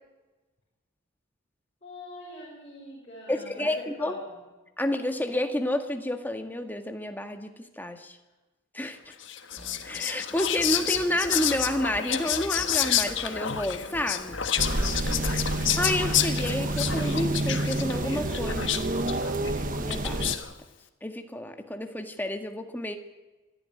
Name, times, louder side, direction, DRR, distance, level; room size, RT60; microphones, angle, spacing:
voice 1, 1.8-4.5 15.0-15.6, left 1 dB, 35° left, -5 dB, 6.4 m, -42 dB
voice 2, 3.3-4.1 4.8-8.2 8.7-9.1 9.8-14.4 15.8-18.9 19.8-20.3 21.0-23.0, left 1 dB, 10° left, 6 dB, 1.8 m, -30 dB
Whispering, 9.2-20.5, left 10 dB, 65° left, 1.5 m, -30 dB
sound 1, 9.6-10.1 10.3-12.0 12.3-17.6, equal, 5° right, 3.5 m, -45 dB
sound 2, 14.6-20.4, right 1 dB, 45° right, 1.2 m, -29 dB
25.0 x 13.0 x 9.9 m, 1.2 s
head